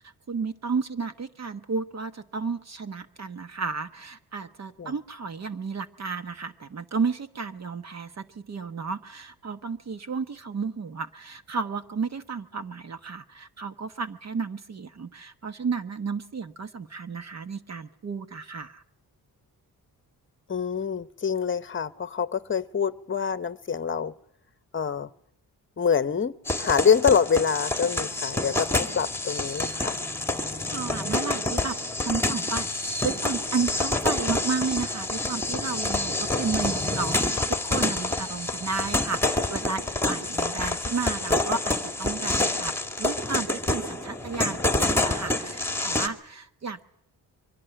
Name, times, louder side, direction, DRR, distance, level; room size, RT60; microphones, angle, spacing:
voice 1, 0.0-18.8 30.7-31.8 32.0-32.7 33.0-42.7 43.0-46.8, right 5 dB, 45° right, 11 dB, 1.1 m, -32 dB
voice 2, 20.5-24.1 24.7-25.1 25.8-30.0, left 7 dB, 30° left, 15 dB, 1.0 m, -25 dB
sound 1, 26.5-46.1, left 2 dB, 5° left, 2.0 m, -27 dB
24.0 x 17.0 x 10.0 m, 0.71 s
cardioid pair, 115°, 38 cm